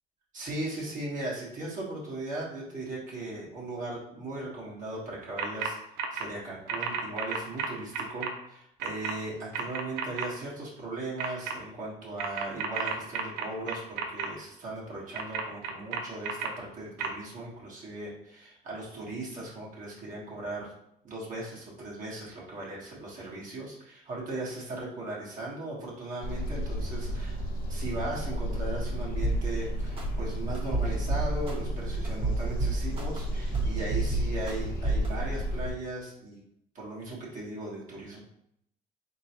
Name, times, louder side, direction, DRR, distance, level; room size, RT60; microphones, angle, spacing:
voice 1, 0.3-5.8 6.1-20.7 21.0-27.4 27.7-36.4 36.7-38.2, right 2 dB, 50° right, -5 dB, 1.3 m, -38 dB
sound 1, 5.4-5.7 6.0-6.2 6.7-8.3 8.8-9.1 9.5-10.2 11.2-11.5 12.2-14.3 15.1-16.5 17.0-17.1, right 7 dB, 75° right, 0.6 m, -32 dB
sound 2, 26.2-35.7, equal, 60° left, 0.8 m, -33 dB
sound 3, 29.2-29.4 30.0-30.1 30.5-31.5 32.0-33.2 33.5-34.5 34.8-35.1, right 3 dB, 35° right, 1.1 m, -28 dB
3.8 x 3.0 x 2.9 m, 0.75 s
cardioid pair, 110°, 17 cm